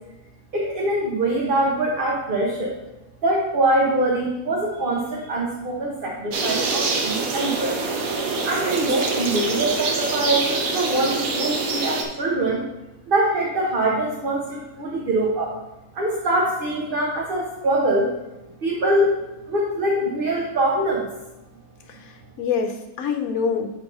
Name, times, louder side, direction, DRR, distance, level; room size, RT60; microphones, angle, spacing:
voice 1, 0.5-2.7 3.2-7.8 8.5-12.6 13.1-15.5 15.9-18.1 18.6-19.2 19.5-21.1, right 1 dB, 40° right, -2 dB, 1.0 m, -23 dB
sound 1, 6.3-12.0, right 3 dB, 75° right, 1.3 m, -25 dB
voice 2, 21.9-23.7, left 6 dB, 80° left, 5 dB, 1.1 m, -26 dB
7.5 x 3.5 x 5.3 m, 0.99 s
omnidirectional pair, 1.5 m